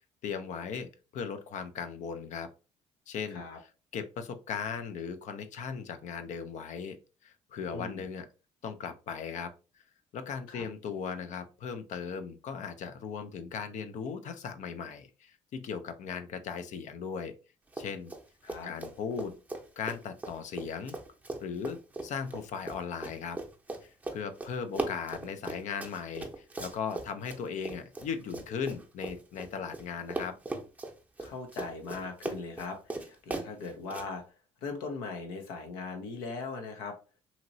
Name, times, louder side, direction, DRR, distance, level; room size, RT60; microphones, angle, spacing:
voice 1, 0.2-2.5 3.1-3.4 3.9-7.0 7.2-8.3 8.6-9.5 10.1-17.3 17.8-18.1 18.6-19.4 19.8-21.0 21.4-23.4 23.8-30.4, left 6 dB, 60° left, 9 dB, 0.5 m, -38 dB
voice 2, 7.7-8.0 10.5-10.6 18.4-18.7 31.2-34.2 34.6-37.0, left 4 dB, 85° left, 4 dB, 0.8 m, -39 dB
Run, 17.7-18.2 18.5-29.8 30.1-34.1, right 2 dB, 10° right, 0.7 m, -39 dB
2.9 x 2.9 x 2.6 m, 0.33 s
supercardioid pair, 70°, 14 cm